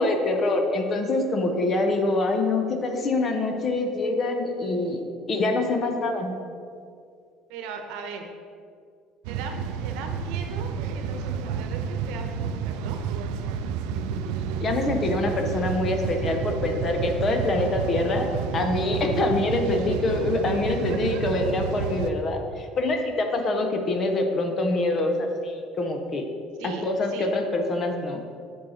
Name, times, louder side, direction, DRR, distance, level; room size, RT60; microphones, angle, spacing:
voice 1, 0.0-5.0 5.3-6.4 14.6-26.2 26.6-28.2, left 2 dB, 25° left, 4 dB, 0.6 m, -25 dB
voice 2, 7.5-8.2 9.3-13.0 20.4-20.5 20.9-21.2 26.6-27.3, right 5 dB, 75° right, 4 dB, 0.9 m, -38 dB
sound 1, 9.2-22.1, right 6 dB, 90° right, 0.4 m, -30 dB
7.3 x 6.3 x 4.2 m, 2.3 s
cardioid pair, 180°, 0 cm